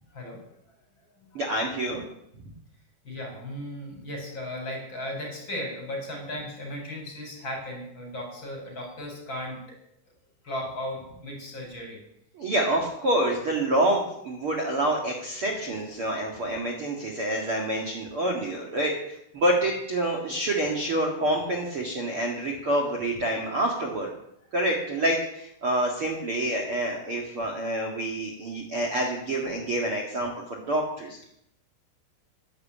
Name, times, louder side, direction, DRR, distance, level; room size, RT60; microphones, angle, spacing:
voice 1, 1.3-2.0 12.3-24.1 24.5-31.3, right 1 dB, 70° right, 0 dB, 1.3 m, -27 dB
voice 2, 3.0-9.6 10.4-12.0, left 1 dB, 25° left, 1 dB, 4.7 m, -36 dB
11.5 x 11.0 x 8.7 m, 0.78 s
omnidirectional pair, 6.0 m